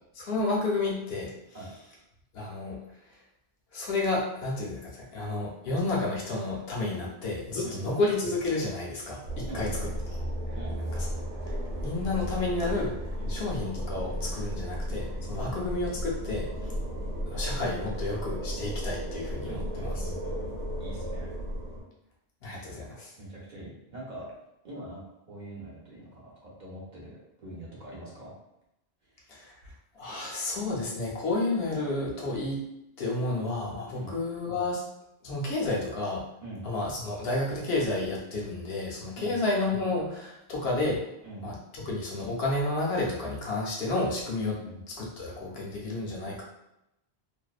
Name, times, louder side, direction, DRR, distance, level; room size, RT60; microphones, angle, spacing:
voice 1, 0.1-1.3 2.3-2.8 3.7-9.9 10.9-11.1 11.5-12.9 13.3-16.7 17.3-20.1 22.4-23.1 29.3-29.5 29.9-32.6 33.0-34.8 35.2-36.3 36.6-41.0 41.4-44.6 45.0-46.4, left 2 dB, 70° left, -3 dB, 0.9 m, -31 dB
sound 1, 9.3-21.8, equal, 70° right, 0.9 m, -34 dB
voice 2, 9.5-9.8 10.5-10.9 13.2-13.4 15.4-15.7 19.4-21.3 23.2-24.3 24.6-25.0 25.3-28.3 29.0-29.2 33.9-34.1 36.4-36.7 39.1-39.4 41.2-41.4 44.5-44.8, right 1 dB, 50° right, -5 dB, 0.8 m, -43 dB
2.6 x 2.1 x 2.3 m, 0.86 s
omnidirectional pair, 1.1 m